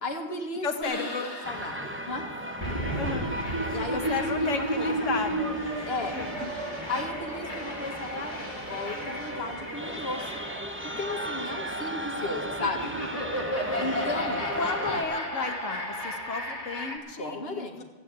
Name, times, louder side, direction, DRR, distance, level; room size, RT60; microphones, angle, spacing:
voice 1, 0.0-2.3 3.7-5.2 5.8-6.2 6.9-10.2 11.0-13.0 13.8-14.5 17.2-17.8, left 2 dB, 55° left, 1 dB, 1.9 m, -35 dB
voice 2, 0.6-1.3 3.0-3.3 3.7-5.6 6.1-6.5 14.6-17.8, left 5 dB, 80° left, 5 dB, 1.5 m, -33 dB
sound 1, 0.8-17.0, equal, 30° left, 2.2 m, -34 dB
sound 2, 1.4-15.0, right 1 dB, 10° right, 0.8 m, -36 dB
14.5 x 9.1 x 8.7 m, 1.2 s
omnidirectional pair, 1.3 m